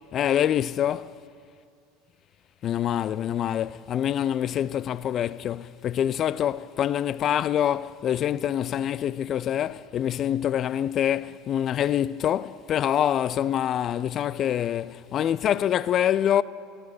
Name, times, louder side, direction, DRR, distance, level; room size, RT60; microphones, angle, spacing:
voice 1, 0.1-1.1 2.6-16.4, left 10 dB, 40° left, 0.4 m, -25 dB
12.5 x 12.5 x 9.0 m
figure-of-eight pair, 75°, 0 cm